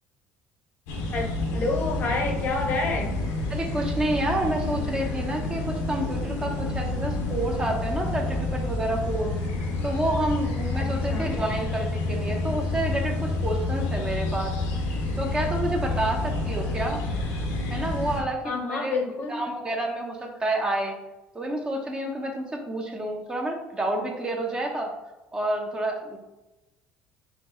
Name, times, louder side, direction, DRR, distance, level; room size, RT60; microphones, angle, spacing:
sound 1, 0.9-18.2, left 2 dB, 85° left, 0.8 m, -29 dB
voice 1, 1.5-3.1 10.8-11.3 18.4-19.4, left 3 dB, 50° left, 3 dB, 0.8 m, -28 dB
voice 2, 3.5-9.4 9.8-14.5 15.2-17.0 17.7-19.0 19.3-21.0 21.3-24.9 25.3-26.2, right 1 dB, 20° right, 1 dB, 0.8 m, -29 dB
4.5 x 2.3 x 3.8 m, 1.0 s
supercardioid pair, 105°, 4 cm